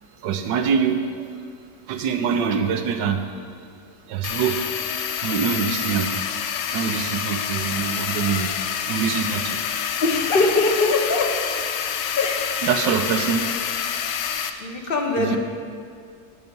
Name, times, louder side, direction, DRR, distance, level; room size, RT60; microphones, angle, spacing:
voice 1, 0.2-1.3 1.9-3.2 4.1-4.6 5.2-6.2 6.7-8.5 8.9-9.6 12.6-13.4 15.2-15.4, right 7 dB, 90° right, 6 dB, 1.4 m, -24 dB
sound 1, 4.2-14.5, left 8 dB, 85° left, 1.3 m, -27 dB
voice 2, 10.0-11.3 12.1-12.7 14.6-15.4, left 3 dB, 40° left, 2 dB, 1.0 m, -22 dB
10.5 x 6.7 x 5.3 m, 2.3 s
omnidirectional pair, 1.9 m